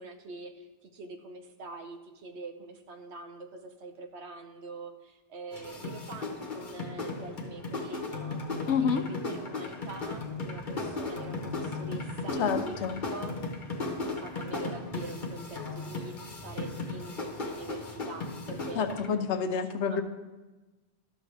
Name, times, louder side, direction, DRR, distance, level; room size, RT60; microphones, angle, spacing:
voice 1, 0.0-8.4 8.8-12.8 13.1-13.4 14.0-18.8 19.4-19.6 19.9-20.0, right 3 dB, 75° right, 5 dB, 1.1 m, -44 dB
sound 1, 5.5-19.1, left 3 dB, 45° left, 1.2 m, -36 dB
voice 2, 8.7-9.0 12.4-13.0 18.8-20.0, left 6 dB, 85° left, 8 dB, 1.0 m, -28 dB
12.5 x 6.5 x 3.3 m, 1.2 s
omnidirectional pair, 1.1 m